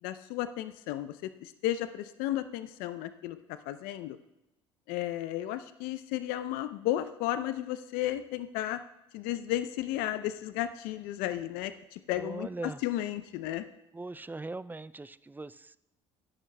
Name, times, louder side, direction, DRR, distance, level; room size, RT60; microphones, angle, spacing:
voice 1, 0.0-4.2 4.9-8.8 9.1-13.7, left 13 dB, 70° left, 11 dB, 0.7 m, -34 dB
voice 2, 12.2-12.8 13.9-15.8, right 3 dB, 10° right, 16 dB, 0.5 m, -40 dB
22.0 x 11.0 x 2.3 m, 0.91 s
hypercardioid pair, 60°, 16 cm